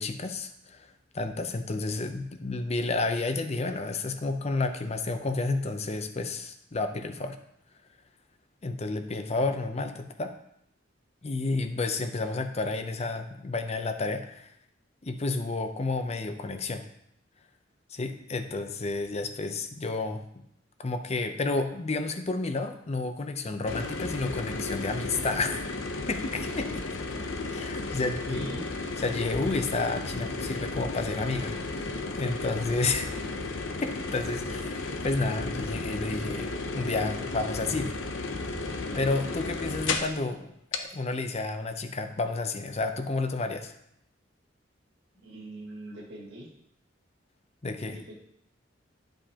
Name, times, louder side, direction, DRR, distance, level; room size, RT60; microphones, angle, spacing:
voice 1, 0.0-7.4 8.6-10.3 11.2-14.5 15.0-16.8 17.9-20.2 20.8-25.7 26.1-26.8 27.5-28.5 29.0-33.2 33.8-36.5 36.7-38.0 38.9-43.7 47.6-48.0, left 3 dB, 35° left, 8 dB, 0.6 m, -31 dB
sound 1, 23.6-40.2 40.7-40.8, left 3 dB, 75° left, 0.7 m, -34 dB
voice 2, 28.0-28.7 45.2-46.5 47.9-48.1, right 1 dB, 60° right, -5 dB, 2.1 m, -43 dB
11.0 x 5.2 x 2.9 m, 0.75 s
head